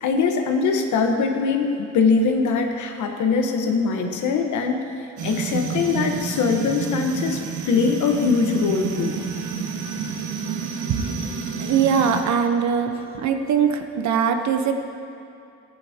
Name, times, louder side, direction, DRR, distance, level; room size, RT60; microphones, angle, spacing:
voice 1, 0.0-1.7 1.9-4.8 5.2-7.4 7.7-9.2, left 4 dB, 75° left, 4 dB, 1.2 m, -22 dB
sound 1, 5.2-12.2, right 5 dB, 85° right, 1.3 m, -29 dB
voice 2, 11.6-14.8, right 7 dB, 65° right, 6 dB, 0.9 m, -21 dB
14.5 x 10.0 x 2.8 m, 2.7 s
cardioid pair, 90°, 30 cm